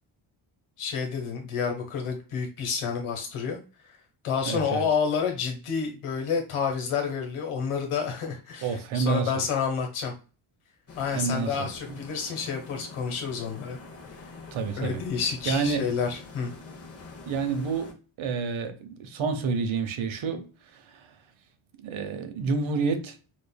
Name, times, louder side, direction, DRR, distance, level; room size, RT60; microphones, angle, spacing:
voice 1, 0.8-3.6 4.2-10.1 11.0-13.8 14.8-16.5, left 6 dB, 80° left, 1.3 m, -29 dB
voice 2, 4.5-4.8 8.6-9.4 11.1-12.0 14.5-15.0 15.5-15.9 17.3-21.0 21.8-23.2, right 5 dB, 70° right, 0.9 m, -29 dB
sound 1, 10.9-17.9, left 3 dB, 30° left, 0.8 m, -45 dB
5.2 x 2.5 x 2.2 m
cardioid pair, 145°, 49 cm